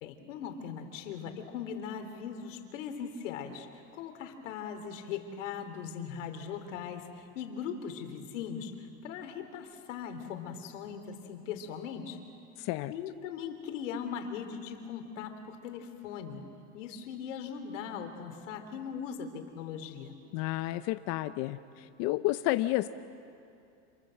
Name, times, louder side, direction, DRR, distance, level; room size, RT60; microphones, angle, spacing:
voice 1, 0.0-12.2 12.9-16.4 16.7-20.1, left 7 dB, 80° left, 7 dB, 3.4 m, -40 dB
voice 2, 12.6-12.9 20.3-22.9, left 17 dB, 40° left, 11 dB, 0.6 m, -31 dB
27.5 x 27.0 x 7.7 m, 2.5 s
supercardioid pair, 155°, 37 cm